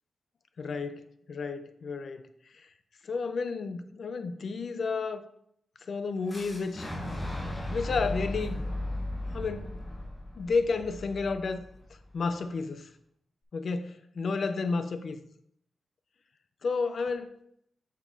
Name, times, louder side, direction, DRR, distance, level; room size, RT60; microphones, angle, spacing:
voice 1, 0.6-2.2 3.1-5.2 5.9-6.9 7.7-8.6 9.3-9.7 10.4-11.6 12.1-12.9 13.5-15.2 16.6-17.3, left 4 dB, 55° left, 0.5 m, -31 dB
Fire / Explosion, 6.3-12.2, left 1 dB, 25° left, 1.1 m, -36 dB
7.2 x 5.2 x 4.0 m
wide cardioid pair, 120°, 0 cm